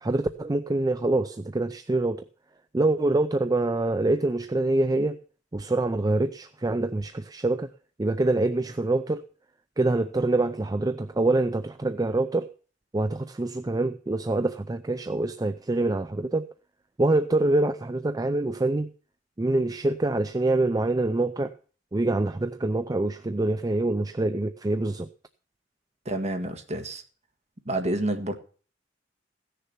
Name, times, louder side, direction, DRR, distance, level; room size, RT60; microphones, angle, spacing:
voice 1, 0.0-2.2 2.7-5.2 5.5-7.7 8.0-9.2 9.8-12.5 12.9-16.5 17.0-18.9 19.4-21.5 21.9-25.1, right 2 dB, 20° right, 0.5 m, -25 dB
voice 2, 26.1-27.0 27.7-28.3, right 1 dB, 40° right, 1.7 m, -28 dB
16.5 x 6.8 x 5.8 m
head